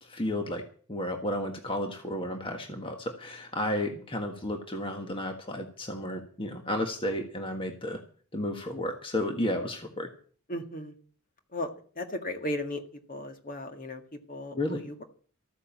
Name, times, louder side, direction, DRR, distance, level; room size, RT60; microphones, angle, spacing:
voice 1, 0.0-0.6 0.9-8.0 8.3-10.1 14.5-14.8, left 1 dB, 25° left, 4 dB, 1.6 m, -32 dB
voice 2, 10.5-10.9 11.5-11.7 12.0-12.8 13.1-14.0 14.3-15.0, left 1 dB, 40° left, 6 dB, 2.0 m, -35 dB
14.0 x 9.7 x 7.2 m, 0.43 s
head